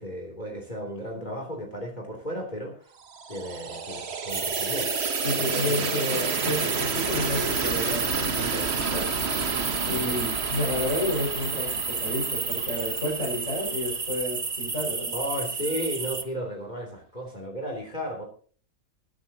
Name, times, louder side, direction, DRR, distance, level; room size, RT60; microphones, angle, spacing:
voice 1, 0.0-2.9 3.3-4.9 5.2-5.9 9.9-10.2 15.1-18.3, equal, 30° left, 1 dB, 3.2 m, -34 dB
sound 1, 3.0-14.0, right 5 dB, 50° right, 1.4 m, -32 dB
sound 2, 4.3-16.2, right 4 dB, 30° right, 1.0 m, -31 dB
voice 2, 5.2-9.1 9.9-15.1, left 1 dB, 55° left, -6 dB, 6.4 m, -31 dB
22.0 x 10.5 x 2.9 m, 0.43 s
omnidirectional pair, 1.5 m